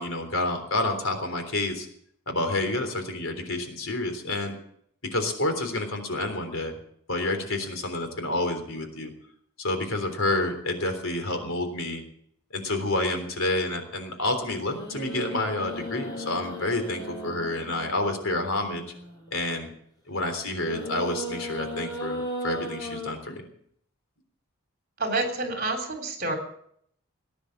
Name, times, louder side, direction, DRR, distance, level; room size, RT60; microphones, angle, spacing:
voice 1, 0.0-1.9 2.3-4.6 5.1-6.7 7.1-9.1 9.6-12.0 12.5-18.8 19.3-19.7 20.1-23.4, left 2 dB, 65° left, 6 dB, 3.6 m, -29 dB
sound 1, 14.5-19.4 20.6-23.1, equal, 15° left, 5.1 m, -36 dB
voice 2, 25.0-26.3, right 2 dB, 45° right, 4 dB, 3.6 m, -28 dB
19.0 x 10.0 x 7.4 m, 0.67 s
head